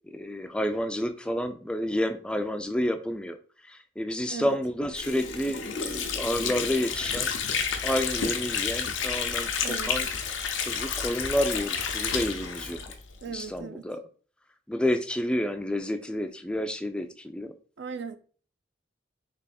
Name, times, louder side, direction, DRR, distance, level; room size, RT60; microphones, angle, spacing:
voice 1, 0.0-3.4 3.6-7.3 7.8-9.5 9.8-10.1 10.6-13.0 13.3-14.0 14.7-17.5, equal, 5° left, 0.3 m, -30 dB
Water / Sink (filling or washing), 4.9-13.5, left 6 dB, 85° left, 0.7 m, -30 dB
voice 2, 9.6-9.9 13.2-13.9 17.8-18.2, right 6 dB, 70° right, 0.4 m, -37 dB
3.4 x 3.0 x 4.1 m
head